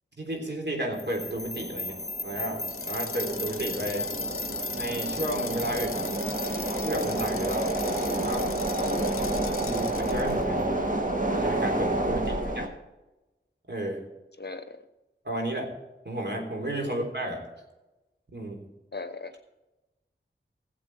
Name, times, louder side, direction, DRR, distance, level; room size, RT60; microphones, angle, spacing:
voice 1, 0.2-2.0 2.2-4.1 4.7-6.1 6.8-7.7 8.1-8.5 9.6-10.7 11.3-12.6 13.7-14.0 15.2-15.7 16.0-17.4 18.3-18.7, right 1 dB, 55° right, 1 dB, 3.6 m, -32 dB
sound 1, 1.0-10.0, left 2 dB, 30° left, 0.6 m, -38 dB
sound 2, 1.1-12.7, right 1 dB, 40° right, 2.1 m, -30 dB
sound 3, 2.6-10.4, left 6 dB, 80° left, 0.6 m, -41 dB
voice 2, 12.3-12.6 14.4-14.8 16.8-17.0 18.9-19.3, left 3 dB, 50° left, 9 dB, 1.0 m, -40 dB
17.0 x 7.7 x 4.8 m, 1.0 s
wide cardioid pair, 50°, 21 cm